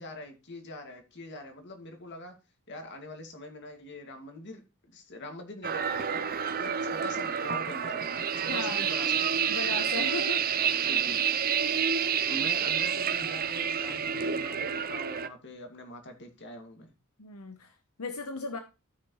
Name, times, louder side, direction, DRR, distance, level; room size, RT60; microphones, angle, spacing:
voice 1, 0.0-2.3 2.7-4.6 4.9-6.3 6.5-9.2 10.8-11.2 12.2-16.9, left 1 dB, 55° left, 4 dB, 2.3 m, -43 dB
sound 1, 5.6-15.3, right 7 dB, 45° right, 0.7 m, -29 dB
voice 2, 8.5-8.9 9.5-10.5 12.3-12.7 17.2-18.6, left 3 dB, 85° left, 6 dB, 1.1 m, -37 dB
13.5 x 6.2 x 3.2 m, 0.28 s
head